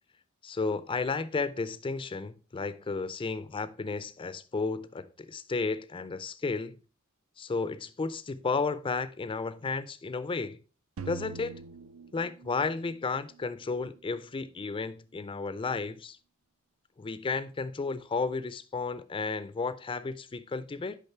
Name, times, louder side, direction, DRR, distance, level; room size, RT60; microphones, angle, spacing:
voice 1, 0.4-6.8 7.4-10.6 11.1-11.6 12.1-16.2 17.0-21.0, left 4 dB, 25° left, 0.3 m, -33 dB
sound 1, 11.0-13.1, right 5 dB, 80° right, 0.5 m, -43 dB
6.5 x 5.1 x 4.2 m
head